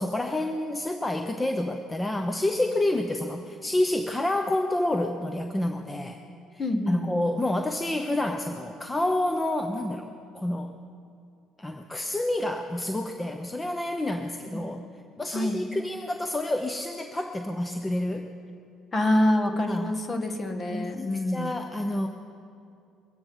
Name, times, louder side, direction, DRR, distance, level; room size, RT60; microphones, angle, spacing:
voice 1, 0.0-6.2 6.9-10.1 10.3-10.8 11.6-14.8 15.2-18.3 19.5-19.9 20.7-22.1, left 1 dB, 15° left, 6 dB, 0.9 m, -28 dB
voice 2, 6.6-7.1 14.5-14.6 15.3-15.6 18.9-21.5, left 1 dB, 35° left, 6 dB, 1.8 m, -26 dB
23.0 x 8.8 x 5.5 m, 2.5 s
hypercardioid pair, 65°, 0 cm